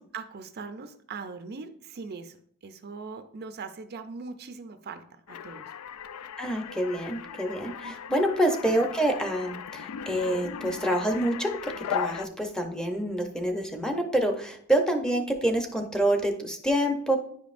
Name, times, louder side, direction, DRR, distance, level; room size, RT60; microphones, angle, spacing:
voice 1, 0.0-2.4 2.6-5.7 7.8-8.2, right 4 dB, 45° right, 9 dB, 0.4 m, -41 dB
sound 1, 5.3-12.3, left 7 dB, 75° left, 0.3 m, -37 dB
voice 2, 6.4-17.2, right 1 dB, 5° left, 4 dB, 0.6 m, -27 dB
9.8 x 5.2 x 2.5 m, 0.64 s
head